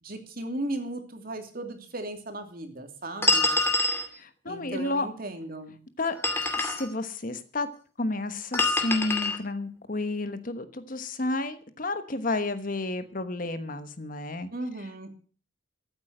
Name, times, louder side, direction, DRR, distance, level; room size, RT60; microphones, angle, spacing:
voice 1, 0.0-3.6 4.5-5.8 14.5-15.1, right 1 dB, 50° right, 6 dB, 2.8 m, -36 dB
sound 1, 3.2-4.1 6.0-6.9 8.5-9.4, left 2 dB, 10° left, 2.5 m, -25 dB
voice 2, 4.1-5.1 6.0-6.2 6.6-7.7 8.0-14.5, left 2 dB, 45° left, 11 dB, 1.2 m, -31 dB
14.0 x 8.7 x 7.9 m, 0.41 s
head